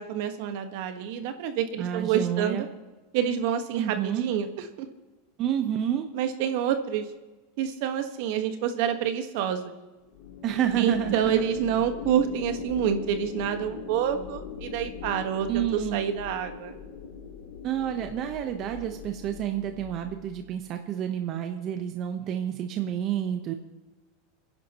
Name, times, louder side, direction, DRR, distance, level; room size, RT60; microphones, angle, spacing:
voice 1, 0.0-2.7 3.1-4.9 6.1-7.1 7.6-9.7 10.7-16.7, right 9 dB, 65° right, 7 dB, 1.6 m, -28 dB
voice 2, 1.8-2.7 3.7-4.2 5.4-6.1 10.4-11.4 15.5-16.0 17.6-23.5, right 10 dB, 45° right, 6 dB, 1.1 m, -29 dB
sound 1, 10.1-20.6, left 6 dB, 70° left, 2.8 m, -41 dB
28.0 x 10.5 x 3.1 m, 1.2 s
supercardioid pair, 125°, 0 cm